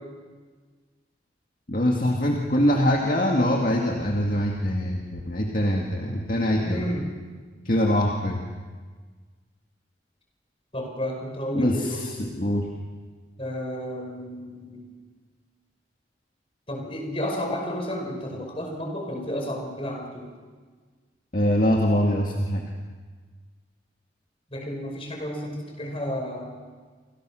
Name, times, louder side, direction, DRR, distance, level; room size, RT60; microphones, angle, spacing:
voice 1, 1.7-6.9 7.6-8.4 11.5-12.7 21.3-22.6, equal, 50° left, 0 dB, 2.2 m, -23 dB
voice 2, 6.6-7.0 10.7-12.1 13.4-14.8 16.7-20.3 24.5-26.5, equal, 30° left, 2 dB, 5.7 m, -31 dB
29.0 x 26.5 x 6.4 m, 1.5 s
head